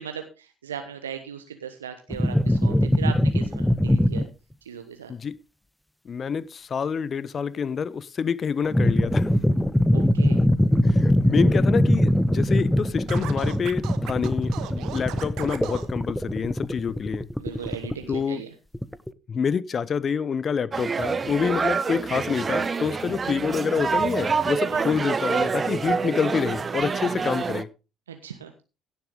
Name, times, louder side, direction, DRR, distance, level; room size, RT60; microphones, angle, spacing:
voice 1, 0.0-4.3 4.6-5.1 9.9-10.4 17.4-18.5 24.7-24.8 28.1-28.5, right 8 dB, 80° right, 1.0 m, -38 dB
sound 1, 2.1-4.3 8.6-18.2 18.7-19.1, left 1 dB, 5° left, 0.8 m, -21 dB
voice 2, 6.0-9.3 10.8-17.3 18.1-18.4 19.3-27.7, left 6 dB, 40° left, 0.7 m, -27 dB
Scratching (performance technique), 13.1-15.9, right 12 dB, 60° right, 1.3 m, -37 dB
sound 2, 20.7-27.6, right 5 dB, 30° right, 0.8 m, -26 dB
16.5 x 7.4 x 3.7 m
figure-of-eight pair, 50°, 0 cm